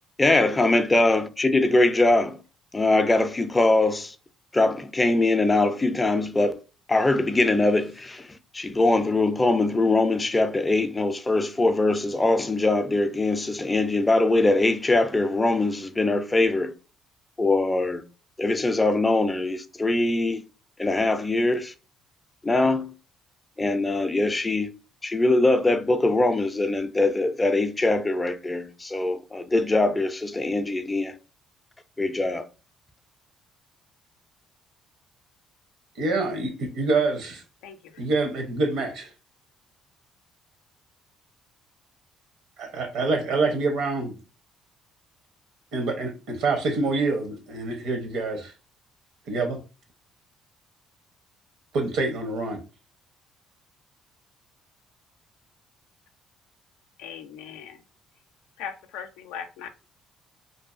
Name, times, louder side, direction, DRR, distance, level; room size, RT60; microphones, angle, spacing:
voice 1, 0.2-2.4 2.7-4.1 4.5-6.6 6.9-8.3 8.5-16.7 17.4-18.0 18.4-20.4 20.8-21.7 22.4-22.9 23.6-24.7 25.0-31.1 32.0-32.4, left 2 dB, 20° left, 0.4 m, -22 dB
voice 2, 36.0-37.4 38.0-39.1 42.6-44.1 45.7-48.5 49.3-49.6 51.7-52.6, right 3 dB, 80° right, 0.8 m, -26 dB
voice 3, 57.0-57.8 58.6-59.7, left 8 dB, 90° left, 0.3 m, -38 dB
2.6 x 2.4 x 2.4 m
cardioid pair, 80°, 0 cm